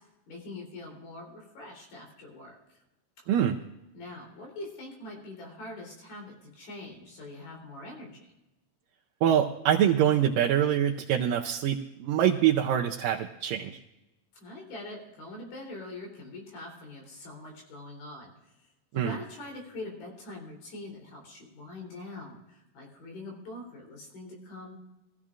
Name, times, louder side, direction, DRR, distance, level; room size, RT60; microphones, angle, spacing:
voice 1, 0.3-2.8 3.9-8.3 14.4-24.8, left 2 dB, 80° left, 0 dB, 5.3 m, -43 dB
voice 2, 9.2-13.8 18.9-19.2, right 10 dB, 80° right, 1 dB, 2.2 m, -25 dB
21.5 x 15.0 x 2.5 m, 0.97 s
omnidirectional pair, 4.1 m